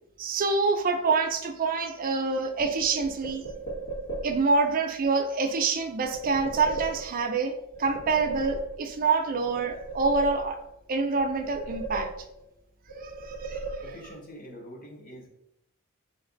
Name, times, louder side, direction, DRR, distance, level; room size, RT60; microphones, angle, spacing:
voice 1, 0.2-3.4 4.2-7.5 7.8-10.6 10.9-12.1 13.0-13.7, right 4 dB, 40° right, 6 dB, 0.4 m, -26 dB
sound 1, 2.6-4.6 6.0-7.4 7.7-9.1 9.4-10.8 11.2-12.5 12.9-14.2, right 3 dB, 75° left, 1.5 m, -37 dB
voice 2, 13.8-15.3, equal, 40° left, 1 dB, 0.8 m, -44 dB
3.3 x 2.8 x 3.8 m, 0.79 s
head